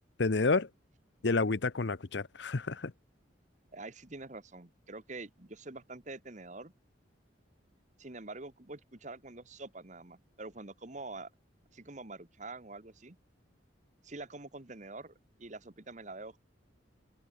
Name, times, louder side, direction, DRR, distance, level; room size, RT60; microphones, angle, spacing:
voice 1, 0.2-0.7 1.2-2.9, left 3 dB, 65° left, 0.8 m, -29 dB
voice 2, 3.7-6.7 8.0-11.3 11.7-13.2 14.0-15.1 15.4-16.4, right 2 dB, 40° right, 1.5 m, -46 dB
open air
head